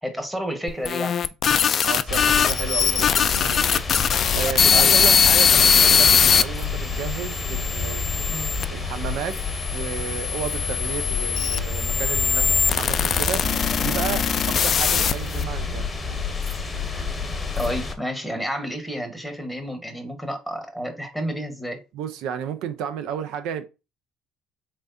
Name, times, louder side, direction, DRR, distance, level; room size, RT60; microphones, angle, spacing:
voice 1, 0.0-1.1 4.7-5.2 8.3-8.5 17.6-21.8, equal, ahead, 1.1 m, -30 dB
sound 1, 0.7-6.4 7.1-8.6 9.4-15.4, left 7 dB, 45° left, 0.3 m, -21 dB
voice 2, 1.8-3.7 4.3-8.0 8.7-9.4 9.7-13.4 13.8-15.9 21.9-23.7, right 8 dB, 70° right, 0.5 m, -32 dB
sound 2, 2.1-17.9, left 4 dB, 20° left, 0.8 m, -29 dB
3.6 x 3.3 x 2.6 m
hypercardioid pair, 70°, 0 cm